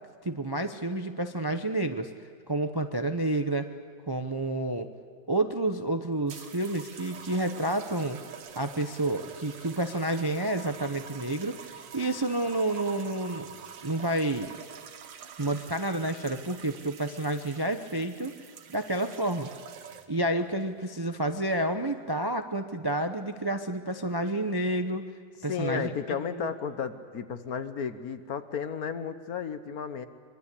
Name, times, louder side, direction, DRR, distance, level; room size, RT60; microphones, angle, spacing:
voice 1, 0.2-2.1 2.5-3.7 4.1-4.9 5.3-8.2 8.6-13.5 13.8-14.6 15.4-18.3 18.7-19.5 20.1-25.1 25.4-25.9 26.3-26.5, right 1 dB, 35° right, 7 dB, 0.4 m, -29 dB
sound 1, 6.3-20.3 21.2-21.5, right 8 dB, 70° right, 1.8 m, -46 dB
voice 2, 25.5-30.1, left 6 dB, 55° left, 10 dB, 1.4 m, -33 dB
24.5 x 23.0 x 8.4 m, 2.1 s
omnidirectional pair, 2.1 m